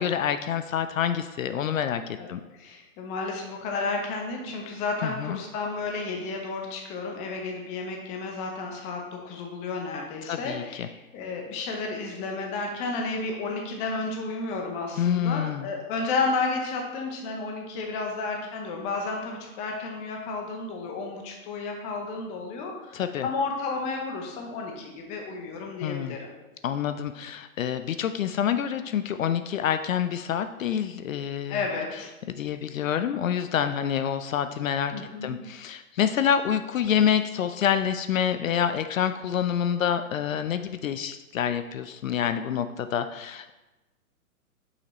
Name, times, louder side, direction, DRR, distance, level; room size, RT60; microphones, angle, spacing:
voice 1, 0.0-2.4 5.0-5.4 10.2-10.9 15.0-15.7 22.9-23.3 25.8-26.2 26.6-31.6 31.9-32.0 32.3-43.5, left 9 dB, 65° left, 10 dB, 0.5 m, -27 dB
voice 2, 2.2-26.3 31.5-32.1 34.9-35.3, left 3 dB, 15° left, 1 dB, 0.7 m, -32 dB
6.9 x 5.6 x 3.1 m, 1.1 s
hypercardioid pair, 135°, 44 cm